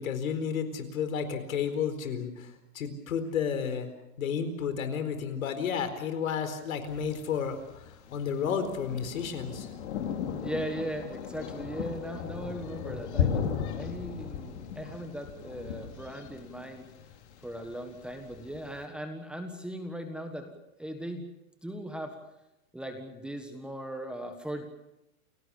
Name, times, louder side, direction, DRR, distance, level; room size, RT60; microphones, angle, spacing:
voice 1, 0.0-3.9 4.2-9.7, left 7 dB, 70° left, 9 dB, 4.4 m, -32 dB
Thunder, 6.9-18.8, left 8 dB, 50° left, 3.5 m, -36 dB
voice 2, 10.4-16.9 17.4-20.5 20.8-21.3 21.6-22.1 22.7-24.7, equal, ahead, 5 dB, 1.5 m, -38 dB
29.5 x 18.0 x 7.1 m, 0.92 s
hypercardioid pair, 155°, 43 cm